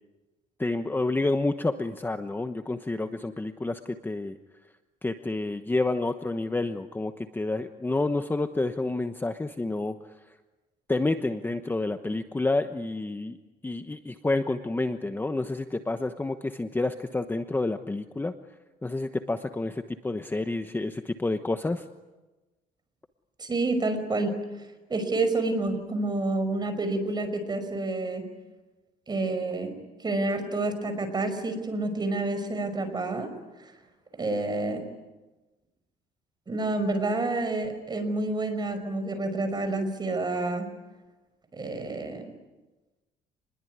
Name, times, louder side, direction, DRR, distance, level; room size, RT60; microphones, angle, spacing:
voice 1, 0.6-4.4 5.0-10.0 10.9-13.4 13.6-18.3 18.8-21.8, left 2 dB, 10° left, 8 dB, 1.1 m, -29 dB
voice 2, 23.4-24.3 24.9-28.3 29.1-29.7 30.0-33.3 33.6-33.7 34.2-34.8 36.5-40.7 41.5-42.3, right 2 dB, 25° right, 8 dB, 5.6 m, -28 dB
28.5 x 21.0 x 9.5 m, 1.2 s
cardioid pair, 110°, 17 cm